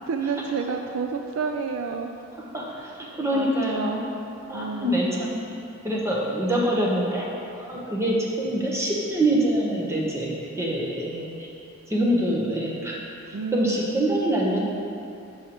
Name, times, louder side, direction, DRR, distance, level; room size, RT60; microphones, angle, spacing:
voice 1, 0.0-2.2 2.7-2.9 3.3-4.1 4.5-5.0 13.3-13.8, right 5 dB, 75° right, 4 dB, 0.4 m, -30 dB
voice 2, 2.5-4.0 4.5-5.6 5.8-7.3 7.6-11.5 11.9-12.9 13.3-14.6, right 1 dB, 15° right, -3 dB, 0.8 m, -25 dB
8.4 x 6.3 x 2.9 m, 2.7 s
head